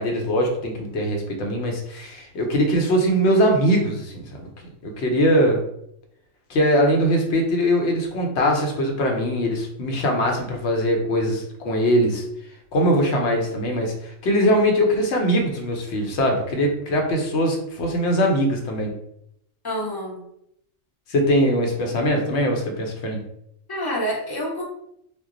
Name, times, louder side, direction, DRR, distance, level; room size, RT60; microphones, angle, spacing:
voice 1, 0.0-4.5 4.8-5.6 6.5-12.2 12.7-18.9 21.1-23.2, equal, 65° left, 2 dB, 0.9 m, -21 dB
voice 2, 19.6-20.2 23.7-24.6, equal, 20° left, -4 dB, 0.7 m, -27 dB
2.2 x 2.1 x 3.7 m, 0.75 s
omnidirectional pair, 1.3 m